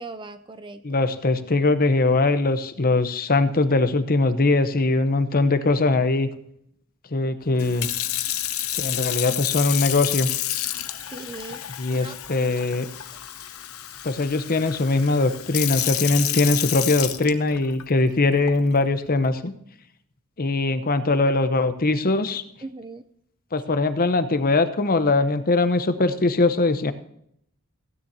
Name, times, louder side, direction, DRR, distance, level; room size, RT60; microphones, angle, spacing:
voice 1, 0.0-1.0 11.1-11.7 11.9-12.5 22.6-23.0, right 3 dB, 20° right, 10 dB, 0.5 m, -39 dB
voice 2, 0.8-6.3 7.1-7.9 8.8-10.3 11.8-12.9 14.0-19.5 20.4-22.4 23.5-26.9, left 3 dB, 40° left, 11 dB, 0.9 m, -21 dB
Sink (filling or washing) / Fill (with liquid), 7.6-17.8 18.5-18.8, left 13 dB, 70° left, 0.9 m, -29 dB
16.5 x 9.5 x 2.8 m, 0.71 s
head